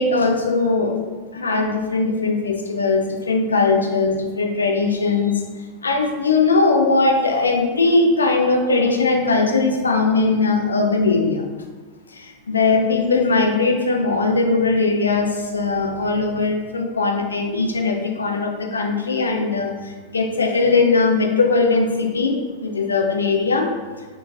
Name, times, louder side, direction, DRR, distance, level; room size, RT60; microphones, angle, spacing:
voice 1, 0.0-1.0 1.3-5.4 5.8-11.5 12.1-24.1, left 3 dB, 75° left, 3 dB, 0.5 m, -20 dB
4.2 x 3.9 x 2.6 m, 1.3 s
figure-of-eight pair, 90°, 0 cm